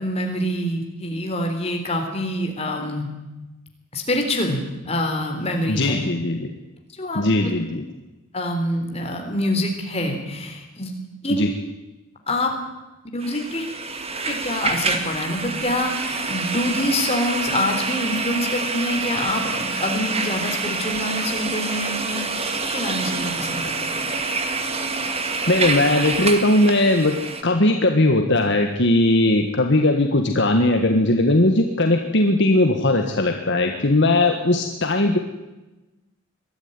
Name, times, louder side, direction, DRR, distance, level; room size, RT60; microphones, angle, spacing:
voice 1, 0.0-3.1 3.9-6.0 7.0-7.5 8.3-10.9 11.2-11.5 12.3-12.5 13.1-13.6 14.3-22.3 22.7-24.1, left 1 dB, 30° left, 3 dB, 3.7 m, -26 dB
voice 2, 5.7-6.5 7.1-7.8 11.3-11.5 25.5-27.2 27.4-35.2, left 1 dB, 55° left, 4 dB, 1.6 m, -19 dB
sound 1, 13.2-27.4, right 3 dB, 30° right, 1.9 m, -27 dB
22.0 x 13.0 x 9.9 m, 1.1 s
head